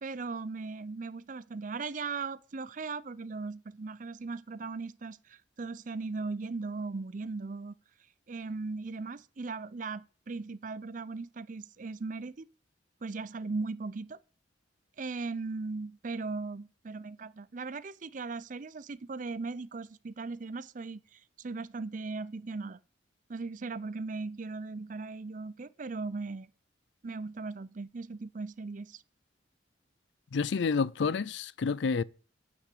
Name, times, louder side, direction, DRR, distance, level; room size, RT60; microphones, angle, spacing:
voice 1, 0.0-7.8 8.3-12.5 13.0-14.2 15.0-22.8 23.3-26.5 27.0-29.0, right 3 dB, 45° right, 0.5 m, -38 dB
voice 2, 30.3-32.0, left 5 dB, 75° left, 0.5 m, -29 dB
9.6 x 5.9 x 8.4 m
head